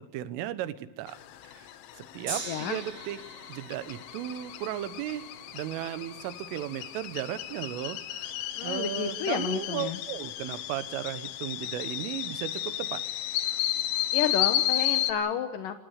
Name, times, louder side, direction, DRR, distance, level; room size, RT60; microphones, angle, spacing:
voice 1, 0.1-1.2 1.5-1.7 2.0-3.2 3.5-8.0 8.6-13.0, right 12 dB, 85° right, 13 dB, 3.7 m, -35 dB
sound 1, 1.1-15.1, left 12 dB, 90° left, 3.9 m, -33 dB
Gong, 2.3-8.6 9.4-9.5, right 3 dB, 35° right, 5.5 m, -44 dB
voice 2, 2.5-2.8 8.6-10.0 14.1-15.8, left 8 dB, 75° left, 7 dB, 2.0 m, -31 dB
27.5 x 19.5 x 6.5 m, 0.98 s
omnidirectional pair, 5.7 m